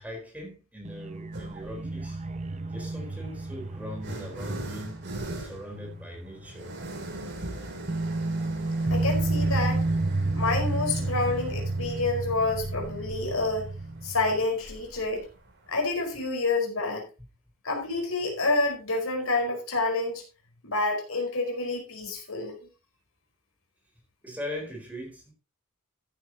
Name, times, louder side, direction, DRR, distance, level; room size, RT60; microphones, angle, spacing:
voice 1, 0.0-2.2 2.7-5.0 5.4-6.7 24.2-25.3, left 1 dB, 5° right, 4.3 m, -40 dB
sound 1, 0.9-6.3 6.6-6.7 7.9-14.4, right 2 dB, 30° right, 0.8 m, -31 dB
sound 2, 1.3-1.8 2.8-16.3, right 1 dB, 50° right, 3.5 m, -41 dB
voice 2, 8.9-9.8 10.3-13.7 14.0-15.2 15.7-17.0 17.6-20.2 20.6-22.6, left 3 dB, 70° left, 4.9 m, -28 dB
14.5 x 9.8 x 2.9 m
head